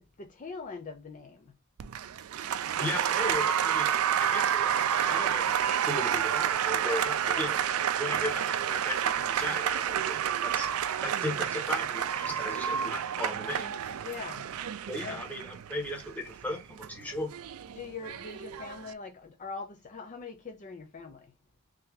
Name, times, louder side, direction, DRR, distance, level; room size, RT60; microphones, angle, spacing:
voice 1, 0.0-1.6 7.2-7.5 14.0-14.5 15.0-15.2 17.7-21.3, left 4 dB, 35° left, 0.4 m, -42 dB
Applause, 1.8-18.9, right 9 dB, 80° right, 0.4 m, -30 dB
voice 2, 2.8-5.5 5.8-7.6 8.0-10.7 11.0-13.7 14.9-17.3, left 1 dB, 5° left, 1.0 m, -36 dB
3.3 x 2.8 x 3.6 m
head